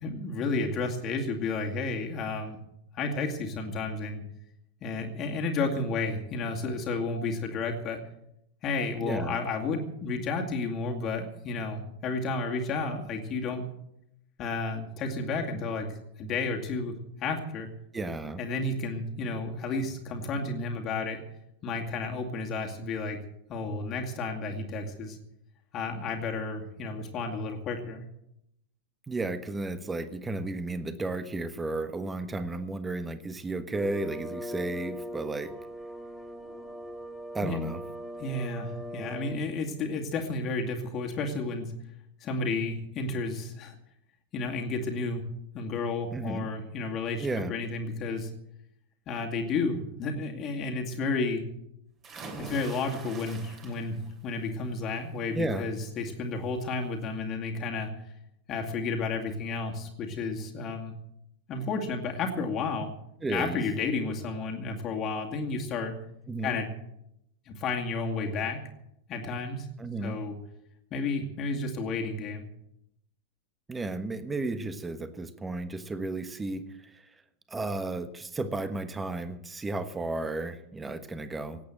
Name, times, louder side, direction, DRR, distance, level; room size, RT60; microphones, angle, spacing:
voice 1, 0.0-2.6 2.9-4.2 4.8-8.0 8.6-13.7 14.4-17.7 18.4-21.2 21.6-23.2 23.5-25.2 25.7-28.0 37.4-37.6 38.2-41.7 42.2-43.8 44.3-45.2 45.5-48.3 49.1-51.4 52.4-54.0 54.2-57.9 58.5-60.9 61.5-62.9 63.3-65.9 66.4-66.7 67.5-68.6 69.1-69.7 70.0-70.4 70.9-72.4, left 3 dB, 30° left, 2 dB, 2.2 m, -32 dB
voice 2, 9.0-9.4 17.9-18.4 29.1-35.6 37.3-37.8 46.1-46.5 47.2-47.5 55.3-55.6 63.2-63.6 66.3-66.6 69.8-70.2 73.7-77.1 77.5-81.6, right 2 dB, 10° right, 12 dB, 1.3 m, -33 dB
sound 1, 33.7-39.4, equal, 5° left, 1.4 m, -40 dB
sound 2, 52.0-54.1 54.5-55.0 56.3-56.4 56.8-56.9, right 3 dB, 30° right, 3.0 m, -44 dB
18.0 x 8.5 x 7.9 m, 0.79 s
figure-of-eight pair, 90°, 0 cm